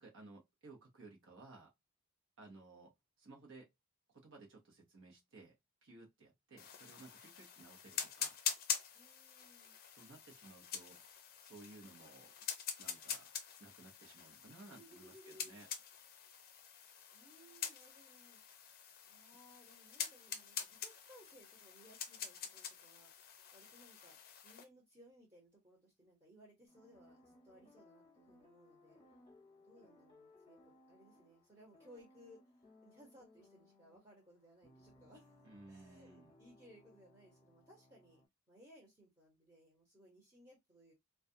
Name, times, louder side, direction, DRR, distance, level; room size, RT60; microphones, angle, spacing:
voice 1, 0.0-1.7 2.4-2.9 3.2-3.7 4.1-5.5 5.8-8.4 9.9-12.3 12.8-13.3 13.6-15.7 35.4-36.3, right 3 dB, 60° right, 0.8 m, -58 dB
sound 1, 6.6-24.6, left 8 dB, 45° left, 0.5 m, -45 dB
voice 2, 8.9-9.7 14.8-15.5 16.2-16.3 17.1-18.4 19.0-23.1 23.5-24.2 24.4-29.0 29.5-32.4 32.8-35.3 35.7-38.2 38.5-40.9, equal, 20° right, 1.0 m, -62 dB
sound 2, 26.7-38.3, left 1 dB, 25° left, 0.9 m, -65 dB
2.3 x 2.2 x 2.6 m
head